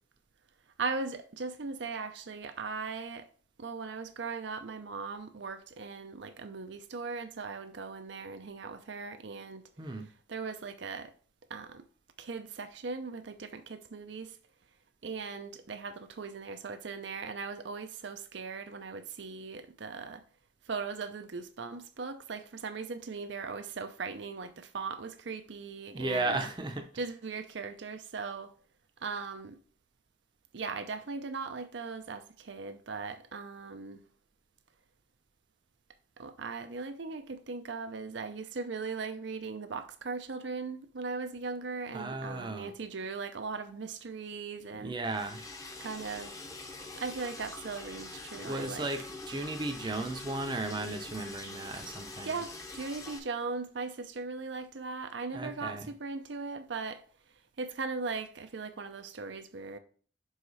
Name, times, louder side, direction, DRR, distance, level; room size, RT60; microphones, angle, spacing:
voice 1, 0.8-3.3 3.6-9.6 10.0-11.1 11.5-11.8 12.2-14.4 15.0-20.2 20.7-26.4 27.0-28.5 29.0-29.6 30.5-34.0 36.2-45.0 45.8-46.3 46.9-48.9 52.2-57.0 57.6-59.8, right 4 dB, 70° right, 0.6 m, -39 dB
voice 2, 25.9-26.8 41.9-42.7 44.8-45.4 48.4-52.4 55.3-55.8, right 2 dB, 25° right, 0.6 m, -35 dB
Liquid, 45.0-53.2, left 2 dB, 20° left, 0.8 m, -45 dB
5.6 x 4.9 x 4.1 m
head